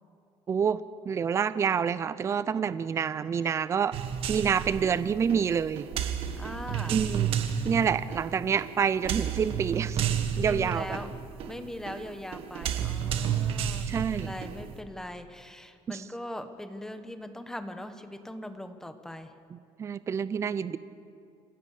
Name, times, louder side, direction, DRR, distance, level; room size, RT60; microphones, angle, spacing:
voice 1, 0.5-0.8 1.1-4.0 4.3-5.9 6.9-7.3 7.6-10.0 10.4-11.0 13.9-14.3 15.9-16.0 19.5-20.8, right 7 dB, 25° right, 15 dB, 0.5 m, -27 dB
sound 1, 3.9-14.8, right 8 dB, 55° right, 1.6 m, -32 dB
voice 2, 6.4-7.0 10.4-11.1 11.5-19.3, left 1 dB, 5° left, 9 dB, 1.2 m, -40 dB
28.0 x 15.5 x 6.7 m, 2.4 s
cardioid pair, 145°, 11 cm